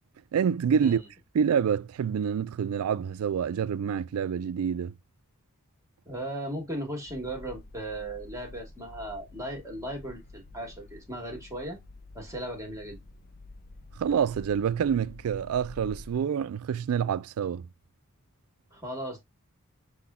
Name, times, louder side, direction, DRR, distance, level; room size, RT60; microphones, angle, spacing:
voice 1, 0.3-1.0 1.3-4.9 14.0-17.7, right 7 dB, 70° right, 0.3 m, -27 dB
voice 2, 6.0-11.8 12.1-13.0 18.7-19.2, right 1 dB, 15° right, 1.3 m, -37 dB
sound 1, 7.1-16.2, left 2 dB, 40° left, 0.5 m, -49 dB
5.8 x 2.3 x 3.5 m
head